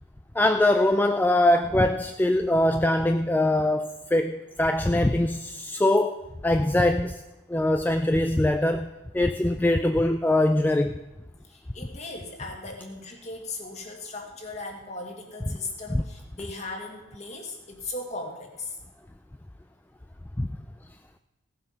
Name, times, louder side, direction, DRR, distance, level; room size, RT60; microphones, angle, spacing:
voice 1, 0.3-6.2 6.4-7.2 7.5-11.0 15.5-15.6 15.9-16.0 20.4-20.5, left 1 dB, 10° left, 7 dB, 0.3 m, -22 dB
voice 2, 11.4-18.8, left 2 dB, 35° left, 1 dB, 2.1 m, -38 dB
16.5 x 7.6 x 5.7 m, 1.1 s
head